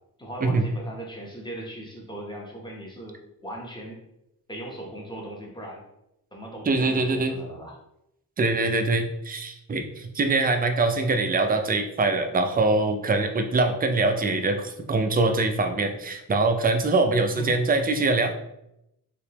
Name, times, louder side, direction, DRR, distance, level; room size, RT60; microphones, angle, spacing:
voice 1, 0.2-4.0 4.5-5.8 6.3-7.8 17.3-17.6, right 1 dB, 10° left, -1 dB, 0.8 m, -38 dB
voice 2, 6.6-7.3 8.4-18.3, right 3 dB, 25° right, 6 dB, 0.4 m, -23 dB
3.3 x 3.1 x 2.9 m, 0.83 s
wide cardioid pair, 105°, 40 cm